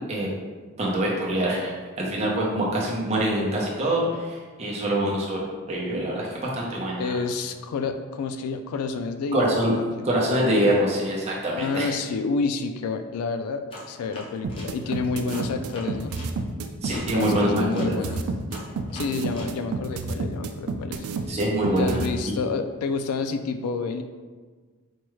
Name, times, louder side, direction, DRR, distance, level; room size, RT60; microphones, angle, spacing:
voice 1, 0.8-5.4 5.7-7.2 9.3-9.7 10.0-11.9 16.8-17.9 21.3-22.0 22.3-22.4, right 1 dB, 30° right, -4 dB, 0.6 m, -25 dB
voice 2, 7.0-9.6 10.0-10.1 11.5-16.1 16.9-18.2 18.9-21.1 21.8-24.0, left 4 dB, 90° left, 9 dB, 0.3 m, -29 dB
sound 1, 13.7-16.3 16.9-19.5, left 1 dB, 25° left, 0.5 m, -43 dB
sound 2, 14.4-22.1, right 4 dB, 85° right, 0.3 m, -30 dB
4.5 x 2.3 x 3.1 m, 1.4 s
head